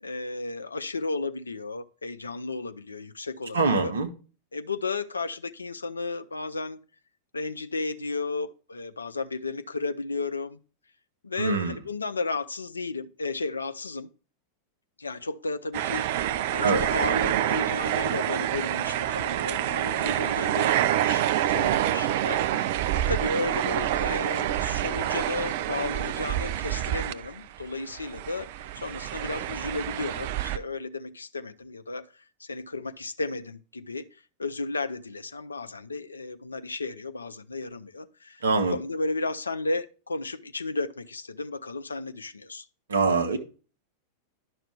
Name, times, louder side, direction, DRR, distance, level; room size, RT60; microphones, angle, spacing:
voice 1, 0.0-3.9 4.5-6.8 7.3-10.6 11.2-14.1 15.0-16.2 16.5-22.6 22.9-38.4 38.7-42.6, left 3 dB, 75° left, 0.5 m, -34 dB
voice 2, 3.5-4.1 11.4-11.8 16.6-16.8 38.4-38.8 42.9-43.4, right 4 dB, 70° right, 1.0 m, -24 dB
sound 1, 15.7-27.6 27.9-30.6, right 12 dB, 50° right, 0.4 m, -27 dB
10.5 x 5.7 x 3.4 m
figure-of-eight pair, 90°, 0 cm